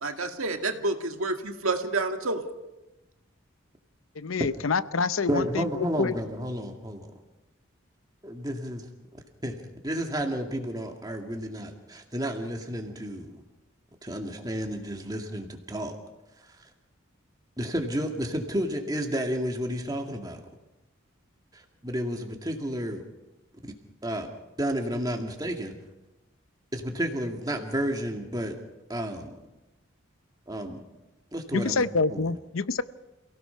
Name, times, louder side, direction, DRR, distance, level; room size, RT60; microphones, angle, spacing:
voice 1, 0.0-2.4, right 3 dB, 90° right, 5 dB, 2.0 m, -29 dB
voice 2, 4.2-6.1 31.5-32.8, left 4 dB, 80° left, 14 dB, 0.7 m, -27 dB
voice 3, 5.3-7.1 8.2-8.8 9.4-9.6 9.8-13.4 14.0-16.0 17.6-20.4 21.5-23.0 23.6-23.7 24.0-24.3 24.6-25.7 26.7-28.5 28.9-29.3 30.5-30.8 31.3-31.8 32.1-32.3, equal, 20° right, 3 dB, 2.2 m, -31 dB
28.0 x 17.0 x 5.8 m, 1.0 s
head